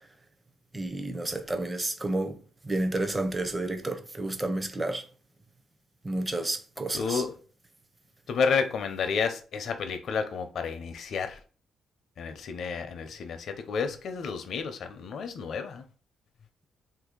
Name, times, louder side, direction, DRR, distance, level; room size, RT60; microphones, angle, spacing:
voice 1, 0.7-5.0 6.0-7.2, right 2 dB, 20° right, 0.6 m, -31 dB
voice 2, 6.9-7.3 8.3-11.4 12.2-15.8, left 5 dB, 60° left, 0.6 m, -31 dB
2.7 x 2.7 x 3.8 m
cardioid pair, 90°, 0 cm